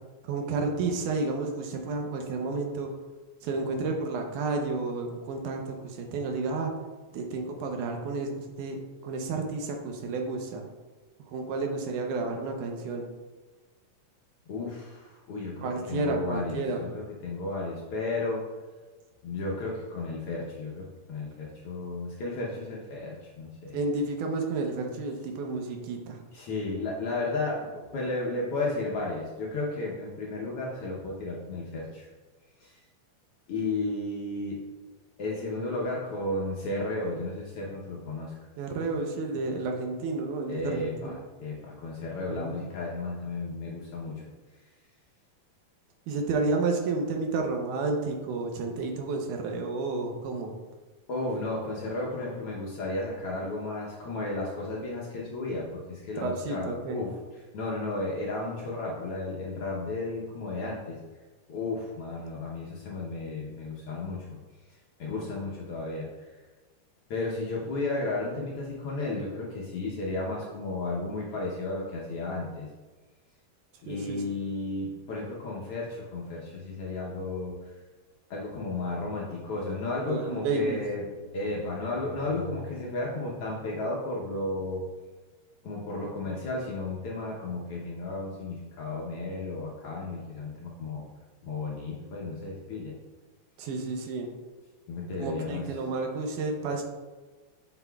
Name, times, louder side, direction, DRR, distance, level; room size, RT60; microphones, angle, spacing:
voice 1, 0.2-2.9 3.4-6.7 7.1-10.6 11.3-13.1 15.6-16.8 23.7-26.2 38.6-41.1 42.3-42.5 46.1-50.6 56.2-57.0 73.9-74.2 80.1-80.8 93.6-94.3 95.2-96.8, right 3 dB, 80° right, 3 dB, 2.2 m, -31 dB
voice 2, 14.5-18.4 19.2-23.8 26.3-32.1 32.6-32.8 33.5-34.6 35.2-38.4 40.5-44.2 51.1-57.2 57.5-61.0 61.5-64.3 65.0-66.1 67.1-72.7 73.8-77.7 78.3-84.8 85.6-91.1 91.4-92.9 94.9-95.7, left 2 dB, 75° left, -3 dB, 1.3 m, -33 dB
7.9 x 5.9 x 2.3 m, 1.3 s
omnidirectional pair, 3.6 m